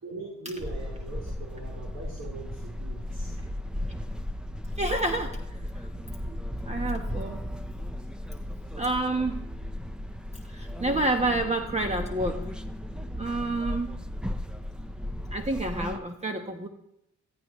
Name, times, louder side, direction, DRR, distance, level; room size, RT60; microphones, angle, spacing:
voice 1, 0.0-3.3, right 2 dB, 55° right, -4 dB, 4.2 m, -41 dB
sound 1, 0.6-16.0, left 1 dB, 5° right, 0.8 m, -35 dB
voice 2, 4.8-5.4 5.7-5.9 6.2-6.4 6.6-7.4 8.7-9.4 10.4-12.5 13.2-13.9 15.3-16.7, right 2 dB, 20° right, 4 dB, 1.1 m, -29 dB
15.5 x 14.0 x 3.1 m, 0.82 s
cardioid pair, 90°, 30 cm